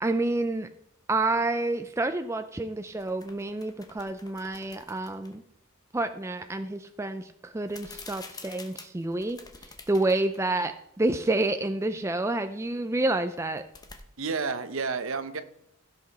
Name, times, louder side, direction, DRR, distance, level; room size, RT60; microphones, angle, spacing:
voice 1, 0.0-0.7 1.1-5.4 5.9-9.4 9.9-13.6, right 2 dB, 15° right, 0.4 m, -28 dB
sound 1, 2.9-5.4 7.6-10.4 10.8-10.9 13.4-14.0, left 4 dB, 15° left, 0.8 m, -48 dB
voice 2, 14.2-15.4, right 4 dB, 65° right, 0.8 m, -30 dB
16.0 x 5.9 x 4.2 m
head